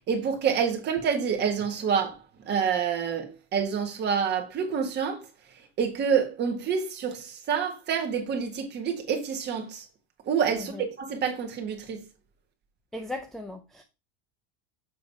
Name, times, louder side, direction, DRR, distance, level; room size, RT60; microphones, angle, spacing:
voice 1, 0.1-2.2 2.4-5.2 5.8-9.8 10.2-12.0, right 7 dB, 30° right, 1.7 m, -27 dB
voice 2, 12.9-13.8, left 1 dB, ahead, 0.4 m, -37 dB
7.2 x 3.7 x 4.8 m
supercardioid pair, 150°, 32 cm